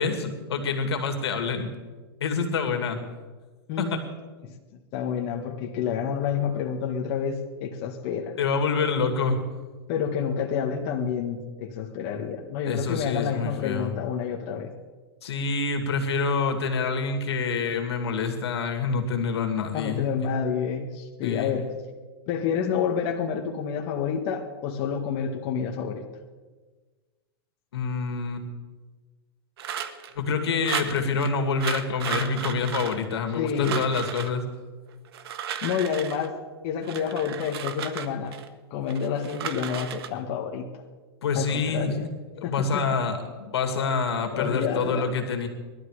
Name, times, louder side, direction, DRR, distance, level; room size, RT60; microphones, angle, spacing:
voice 1, 0.0-1.7 2.2-3.0 3.8-4.0 8.4-9.4 12.6-14.0 15.2-20.3 21.2-21.5 27.7-28.5 30.1-34.4 41.2-41.9 42.4-45.5, left 4 dB, 85° left, 5 dB, 2.5 m, -27 dB
voice 2, 3.7-4.0 4.4-4.5 4.9-8.4 9.9-14.7 19.7-21.7 22.3-26.0 33.4-33.8 35.6-36.4 36.6-38.4 38.7-40.7 41.4-42.1 42.4-42.8 44.3-45.0, left 7 dB, 45° left, 1 dB, 1.8 m, -29 dB
sound 1, 29.6-30.1 30.6-31.3 31.6-33.4 33.6-34.3 35.0-36.3 36.8-38.5 38.9-40.1, right 8 dB, 75° right, 1.4 m, -34 dB
20.5 x 12.5 x 5.0 m, 1.3 s
hypercardioid pair, 135°, 13 cm